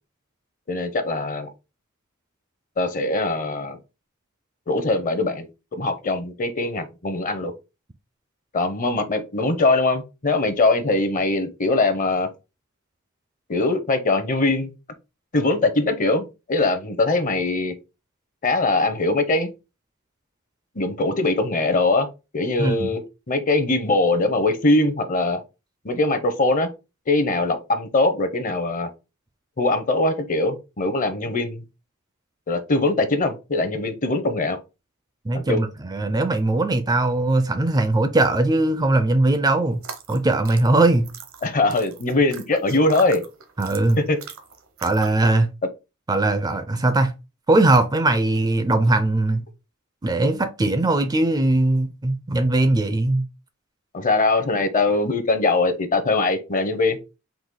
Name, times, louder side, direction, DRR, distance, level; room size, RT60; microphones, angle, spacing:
voice 1, 0.7-1.5 2.8-3.8 4.7-7.5 8.5-12.3 13.5-14.7 15.3-17.8 18.4-19.5 20.7-22.1 22.3-23.0 23.3-25.4 25.8-26.7 27.1-28.9 29.6-31.6 32.5-34.6 35.3-35.6 41.4-43.2 44.1-44.2 53.9-57.0, left 2 dB, 40° left, 0.7 m, -22 dB
voice 2, 22.6-22.9 35.3-39.8 40.1-41.1 43.6-44.0 44.8-45.5 46.1-47.1 47.5-49.4 50.0-53.3, right 2 dB, 20° right, 0.4 m, -20 dB
sound 1, 39.7-45.3, right 7 dB, 70° right, 0.8 m, -40 dB
4.0 x 2.7 x 3.7 m
head